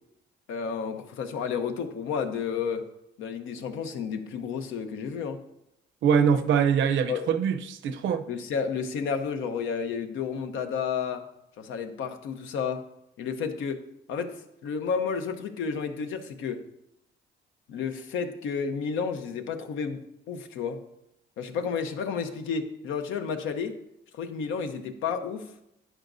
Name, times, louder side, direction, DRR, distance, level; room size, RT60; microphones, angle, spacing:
voice 1, 0.5-2.9 3.2-5.4 7.1-7.2 8.3-11.3 11.6-12.8 13.2-13.8 14.1-16.6 17.7-20.8 21.4-23.7 24.1-25.5, left 6 dB, 85° left, 7 dB, 0.9 m, -31 dB
voice 2, 6.0-8.2, right 7 dB, 75° right, 9 dB, 0.7 m, -23 dB
11.0 x 9.1 x 2.6 m, 0.83 s
cardioid pair, 90°, 20 cm